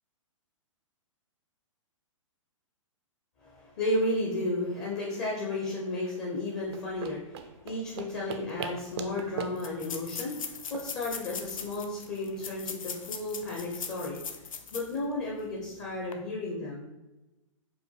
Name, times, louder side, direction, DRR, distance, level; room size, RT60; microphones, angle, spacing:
voice 1, 3.4-14.4 14.7-16.9, left 2 dB, 35° left, -4 dB, 0.8 m, -33 dB
sound 1, 6.6-11.8, right 6 dB, 50° right, 0.4 m, -41 dB
sound 2, 8.5-8.6 8.8-8.9 9.6-15.0 15.4-15.5 16.0-16.1, left 6 dB, 80° left, 0.5 m, -40 dB
4.8 x 2.2 x 3.3 m, 1.0 s
hypercardioid pair, 130°, 17 cm